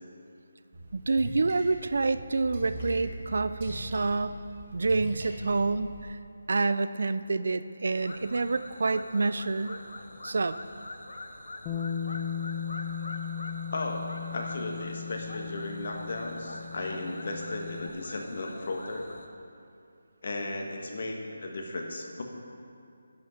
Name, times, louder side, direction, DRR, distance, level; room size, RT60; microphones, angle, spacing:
Splash splatter, 0.7-6.0, right 1 dB, 30° right, 1.6 m, -41 dB
voice 1, 0.9-4.4 4.7-6.2 6.5-9.8 10.2-10.6, right 3 dB, 65° right, 13 dB, 0.4 m, -28 dB
sound 1, 7.9-19.3, left 2 dB, 80° left, 0.9 m, -44 dB
Bass guitar, 11.7-17.9, left 7 dB, 15° left, 0.3 m, -37 dB
voice 2, 13.7-19.1 20.2-22.2, left 2 dB, 50° left, 2 dB, 1.3 m, -35 dB
10.5 x 6.3 x 5.7 m, 2.5 s
figure-of-eight pair, 170°, 0 cm